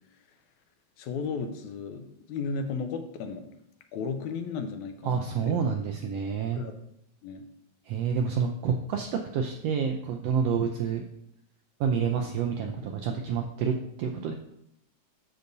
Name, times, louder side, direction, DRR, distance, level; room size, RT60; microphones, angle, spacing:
voice 1, 1.0-3.5 3.9-5.6 6.5-6.7 7.2-7.5, left 5 dB, 85° left, 7 dB, 2.0 m, -34 dB
voice 2, 5.0-6.6 7.9-11.0 11.8-14.4, right 6 dB, 80° right, 3 dB, 1.4 m, -28 dB
8.2 x 6.6 x 2.6 m, 0.78 s
omnidirectional pair, 3.3 m